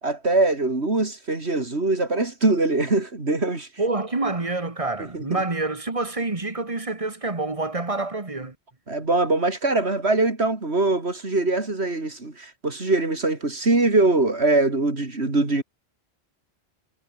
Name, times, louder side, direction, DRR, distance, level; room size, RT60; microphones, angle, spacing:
voice 1, 0.0-3.7 5.0-5.4 8.9-15.6, right 2 dB, 80° right, 4.0 m, -22 dB
voice 2, 3.8-8.6, right 3 dB, 30° right, 1.8 m, -27 dB
omnidirectional pair, 1.1 m